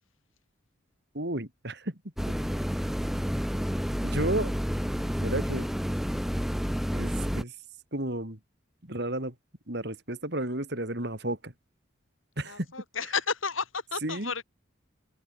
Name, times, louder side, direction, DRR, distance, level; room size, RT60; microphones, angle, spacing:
voice 1, 1.1-2.0 4.0-4.5 5.2-5.7 6.9-7.5 7.9-8.4 8.8-9.3 9.7-11.5 12.4-12.7 14.0-14.3, right 1 dB, 55° right, 3.7 m, -32 dB
sound 1, 2.2-7.4, equal, ahead, 3.8 m, -30 dB
voice 2, 12.4-14.4, left 5 dB, 85° left, 6.0 m, -32 dB
head